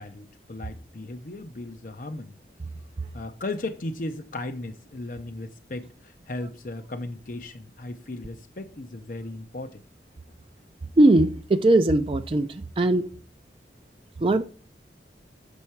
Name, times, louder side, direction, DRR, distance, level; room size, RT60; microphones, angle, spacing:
voice 1, 0.0-2.4 3.1-9.8, left 2 dB, 45° left, 0.6 m, -36 dB
voice 2, 11.0-12.5 12.8-13.1 14.2-14.4, right 2 dB, 30° right, 0.4 m, -19 dB
7.1 x 5.5 x 4.5 m
head